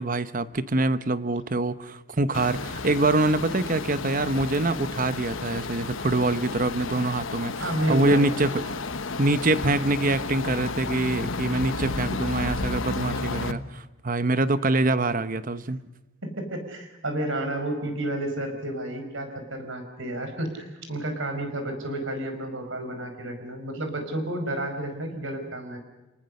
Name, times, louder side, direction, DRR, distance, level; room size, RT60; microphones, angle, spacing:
voice 1, 0.0-7.5 7.9-8.6 9.2-15.8, right 2 dB, 40° right, 13 dB, 0.9 m, -25 dB
sound 1, 2.3-13.5, left 3 dB, 65° left, 1.1 m, -32 dB
voice 2, 7.6-8.4 16.2-25.8, right 1 dB, 60° right, 6 dB, 5.1 m, -31 dB
30.0 x 19.0 x 6.6 m, 1.1 s
head